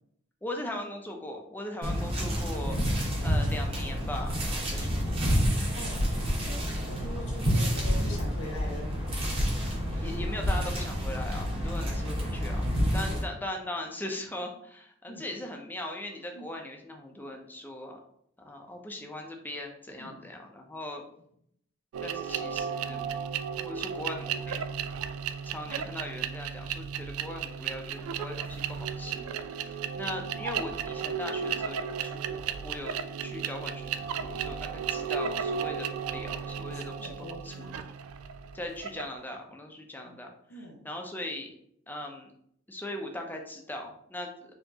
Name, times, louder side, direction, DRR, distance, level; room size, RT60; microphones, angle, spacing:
voice 1, 0.4-2.8 3.2-5.4 9.6-18.0 18.4-21.0 22.0-23.0 23.6-24.8 25.4-37.8 38.5-41.5 41.9-42.3 42.7-44.5, left 1 dB, 10° left, 2 dB, 0.5 m, -40 dB
sound 1, 1.8-13.2, equal, 25° right, 1.1 m, -29 dB
voice 2, 5.7-8.9 13.1-13.2 15.1-15.3 16.3-16.4 20.0-20.2 25.6-25.7 36.7-37.8 40.0-40.1 40.5-40.8, left 1 dB, 85° left, -1 dB, 1.5 m, -44 dB
sound 2, 21.9-39.2, right 7 dB, 80° right, 0.3 m, -34 dB
4.3 x 2.9 x 2.8 m, 0.69 s
head